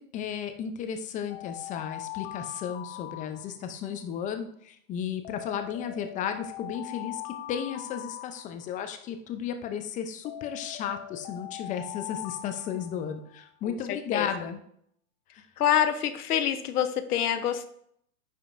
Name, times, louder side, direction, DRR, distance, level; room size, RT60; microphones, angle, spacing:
voice 1, 0.0-7.2 7.5-14.6 15.3-15.5, left 8 dB, 20° left, 7 dB, 0.5 m, -34 dB
Alarm, 1.3-3.9 5.2-8.9 10.2-13.5, left 15 dB, 55° left, 0.7 m, -42 dB
voice 2, 13.7-14.3 15.6-17.7, left 10 dB, 90° left, 11 dB, 0.8 m, -26 dB
9.6 x 5.1 x 2.5 m, 0.68 s
hypercardioid pair, 130°, 44 cm